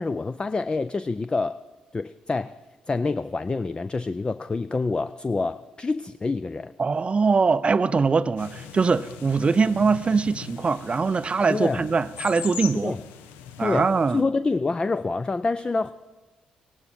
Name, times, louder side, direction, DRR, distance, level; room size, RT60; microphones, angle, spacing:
voice 1, 0.0-1.6 1.9-2.6 2.9-6.7 11.5-11.9 12.8-13.0 13.6-15.9, left 3 dB, 25° left, 0.4 m, -27 dB
voice 2, 6.8-12.9 13.6-14.2, right 4 dB, 35° right, 0.4 m, -22 dB
sound 1, 8.4-14.2, left 9 dB, 80° left, 0.6 m, -40 dB
16.0 x 12.0 x 4.4 m
hypercardioid pair, 45°, 3 cm